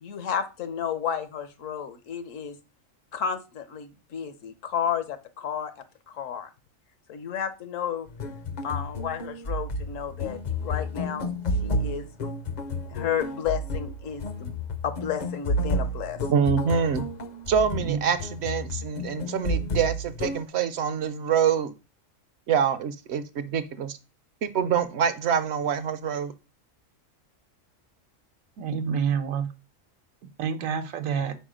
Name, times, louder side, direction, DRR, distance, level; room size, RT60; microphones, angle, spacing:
voice 1, 0.0-2.6 3.1-5.7 6.1-6.5 7.1-8.1 8.6-11.3 11.6-12.0 12.9-14.5 14.8-16.2, left 8 dB, 75° left, 1.2 m, -32 dB
sound 1, 8.1-20.4, left 1 dB, 50° left, 0.5 m, -31 dB
voice 2, 16.3-17.0 17.5-21.7 22.5-24.0 24.4-26.3, right 7 dB, 65° right, 0.8 m, -25 dB
voice 3, 17.7-18.0 28.6-29.5 30.4-31.3, right 7 dB, 80° right, 1.2 m, -28 dB
5.4 x 4.7 x 5.0 m
omnidirectional pair, 1.4 m